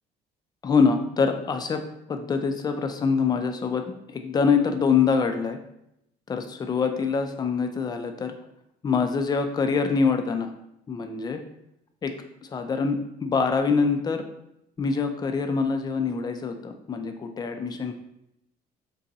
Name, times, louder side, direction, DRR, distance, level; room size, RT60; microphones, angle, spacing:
voice 1, 0.6-1.8 2.1-3.8 4.1-5.6 6.3-8.3 8.8-10.5 10.9-11.4 12.0-12.1 12.5-14.2 14.8-17.9, left 5 dB, 25° left, 6 dB, 0.3 m, -24 dB
2.6 x 2.3 x 3.8 m, 0.80 s
cardioid pair, 110°, 17 cm